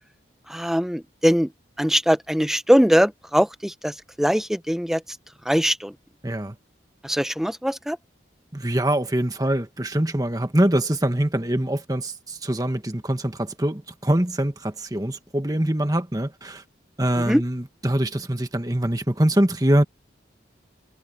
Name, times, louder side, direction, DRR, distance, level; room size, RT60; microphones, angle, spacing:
voice 1, 0.5-1.5 1.8-5.0 5.5-5.9 7.0-8.0 17.3-17.4, equal, ahead, 0.8 m, -21 dB
voice 2, 6.2-6.5 8.5-16.6 17.0-19.8, right 1 dB, 20° right, 1.5 m, -23 dB
head